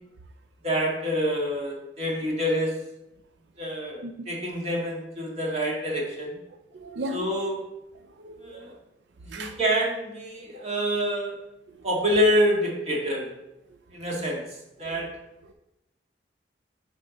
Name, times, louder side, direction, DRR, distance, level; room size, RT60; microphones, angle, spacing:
voice 1, 0.6-2.8 3.6-6.4 7.1-7.6 8.4-8.7 9.2-11.4 11.8-13.3 13.9-14.4 14.8-15.1, equal, 40° right, -3 dB, 1.9 m, -26 dB
voice 2, 6.7-7.3 8.2-8.7 9.3-9.6, right 1 dB, 90° right, 6 dB, 0.5 m, -35 dB
7.8 x 3.6 x 5.1 m, 0.91 s
head